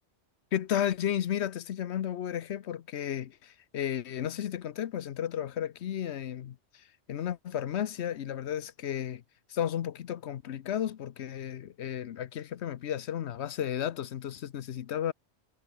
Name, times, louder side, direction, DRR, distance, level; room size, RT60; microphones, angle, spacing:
voice 1, 0.5-9.2 9.5-15.1, left 10 dB, 65° left, 1.0 m, -33 dB
omnidirectional pair, 1.3 m